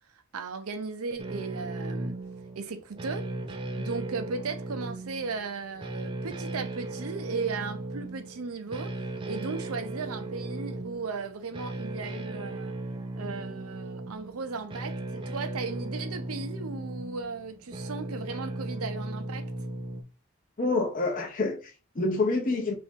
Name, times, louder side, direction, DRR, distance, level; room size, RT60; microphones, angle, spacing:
voice 1, 0.3-2.2 2.6-3.3 3.8-12.7 13.2-19.5, right 4 dB, 85° right, 0.6 m, -36 dB
sound 1, 1.2-20.0, right 2 dB, 25° right, 0.3 m, -37 dB
voice 2, 20.6-22.7, left 3 dB, 40° left, 0.6 m, -27 dB
2.9 x 2.6 x 3.5 m
head